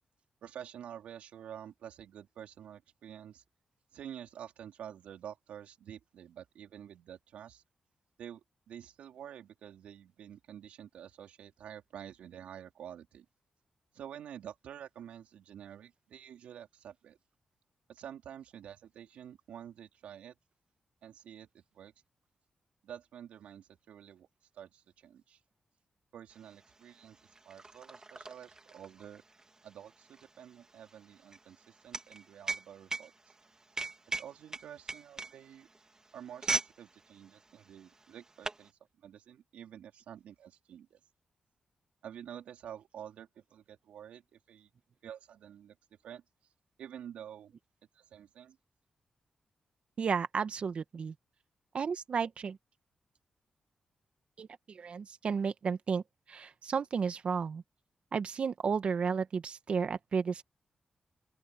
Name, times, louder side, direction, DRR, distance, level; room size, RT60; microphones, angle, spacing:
voice 1, 0.4-3.4 3.9-7.6 8.2-13.3 13.9-17.2 17.9-20.4 21.0-21.9 22.8-24.3 24.5-25.4 26.1-27.2 27.4-29.2 29.6-33.1 34.2-35.7 36.1-41.0 42.0-44.7 45.0-46.2 46.8-47.5 47.9-48.6, right 9 dB, 85° right, 4.1 m, -49 dB
sound 1, 26.5-26.6 26.8-36.8 37.1-37.3 38.0-38.7, right 3 dB, 30° right, 2.4 m, -38 dB
voice 2, 50.0-51.1 51.7-52.6 54.4-56.0 56.3-57.6 58.1-60.4, right 6 dB, 65° right, 1.4 m, -33 dB
open air
supercardioid pair, 50°, 2 cm